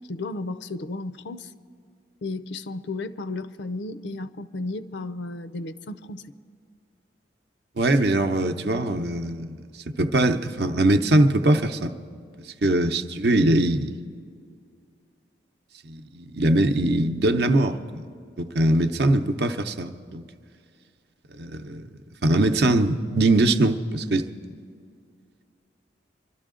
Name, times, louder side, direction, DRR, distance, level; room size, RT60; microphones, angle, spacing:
voice 1, 0.1-1.5 2.2-6.2, left 2 dB, 80° left, 13 dB, 0.6 m, -33 dB
voice 2, 7.8-9.6 9.9-11.9 12.4-13.9 15.8-18.0 18.4-20.2 21.3-21.9 22.2-24.3, right 1 dB, 65° right, 8 dB, 0.7 m, -22 dB
25.0 x 12.5 x 3.8 m, 2.2 s
head